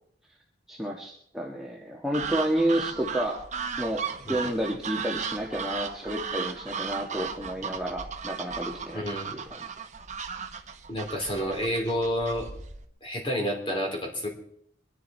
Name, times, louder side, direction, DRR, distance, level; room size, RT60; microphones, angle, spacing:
voice 1, 0.7-3.4 3.8-4.0 4.3-9.6, right 1 dB, ahead, -2 dB, 1.5 m, -30 dB
sound 1, 2.1-12.9, right 6 dB, 40° right, 1.2 m, -36 dB
voice 2, 8.9-9.4 10.9-12.5 13.0-14.3, equal, 30° left, 0 dB, 3.9 m, -29 dB
23.5 x 11.0 x 4.4 m, 0.69 s
head